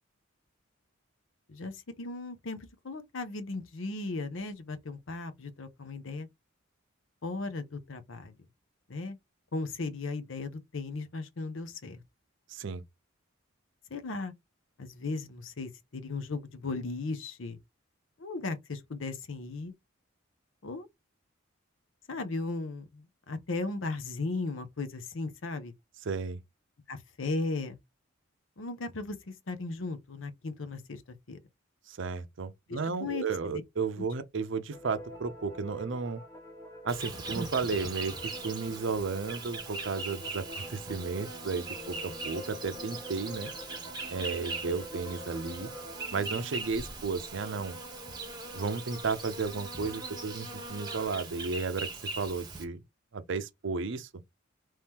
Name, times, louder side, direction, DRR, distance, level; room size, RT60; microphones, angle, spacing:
voice 1, 1.5-6.3 7.2-8.3 8.9-9.2 9.5-12.0 13.9-14.3 14.8-17.6 18.2-19.7 20.6-20.9 22.1-25.7 26.9-27.8 28.6-31.4 32.7-33.3 34.0-34.1, left 3 dB, 65° left, 0.7 m, -36 dB
voice 2, 12.5-12.8 26.0-26.4 31.9-36.2 36.8-43.5 44.1-45.7 46.1-47.8 48.5-52.8 53.1-54.1, right 4 dB, 60° right, 0.5 m, -33 dB
sound 1, 34.7-46.1, left 1 dB, 15° left, 0.9 m, -46 dB
Insect, 36.9-52.6, right 3 dB, 20° right, 1.0 m, -40 dB
3.1 x 2.9 x 3.5 m
head